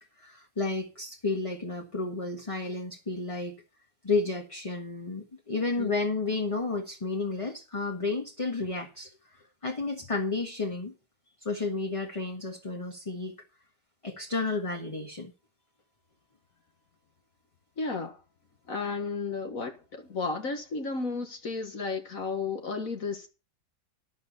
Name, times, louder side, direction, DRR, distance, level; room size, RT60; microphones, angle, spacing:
voice 1, 0.2-3.6 4.0-9.1 9.6-10.9 11.4-13.3 14.0-15.3, left 3 dB, 20° left, 1.5 m, -31 dB
voice 2, 17.8-18.2 18.7-23.3, left 4 dB, 60° left, 2.0 m, -33 dB
12.5 x 10.5 x 4.3 m
omnidirectional pair, 1.7 m